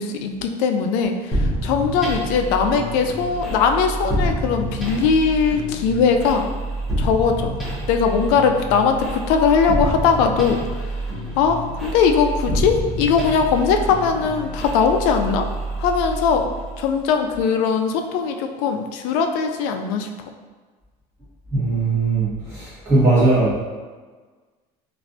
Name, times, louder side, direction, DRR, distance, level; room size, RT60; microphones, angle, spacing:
voice 1, 0.0-6.5 7.0-7.5 7.9-11.0 11.4-15.5 15.8-16.5 16.8-20.1, left 6 dB, 75° left, 5 dB, 0.4 m, -20 dB
sound 1, 1.3-16.9, right 1 dB, ahead, 0.9 m, -27 dB
voice 2, 21.5-23.6, right 2 dB, 20° right, -10 dB, 1.3 m, -19 dB
3.1 x 2.6 x 2.6 m, 1.4 s
cardioid pair, 155°, 15 cm